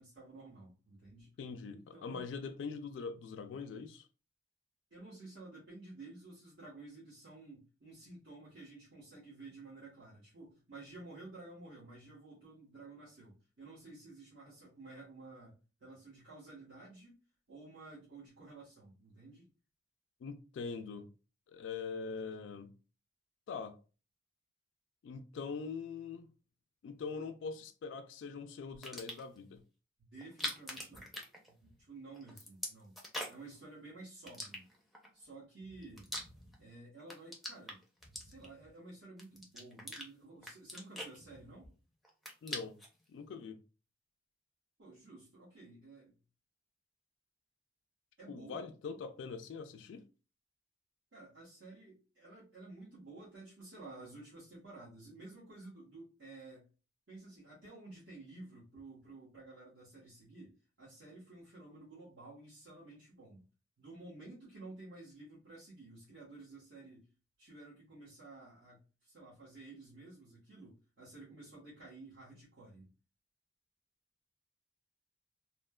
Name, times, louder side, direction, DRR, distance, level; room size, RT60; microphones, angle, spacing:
voice 1, 0.0-1.3 1.7-2.3 4.9-17.2 17.5-19.5 30.0-31.1 31.5-32.9 33.3-34.7 35.1-36.1 36.6-37.8 38.2-41.7 44.8-46.1 48.2-48.7 51.1-56.6 57.1-63.4 63.8-67.1 67.4-72.9, right 2 dB, 80° right, 1.0 m, -53 dB
voice 2, 1.4-4.1 20.2-21.1 21.5-22.7 23.5-23.8 25.0-26.3 26.8-29.6 42.4-42.8 43.1-43.6 48.3-50.0, left 5 dB, 75° left, 0.3 m, -43 dB
sound 1, 28.7-29.4 30.2-31.9 32.1-33.5 34.3-35.1 35.6-36.7 37.0-38.7 39.2-40.1 40.4-41.7 42.0-42.9, left 1 dB, ahead, 0.5 m, -43 dB
3.1 x 2.1 x 2.2 m
head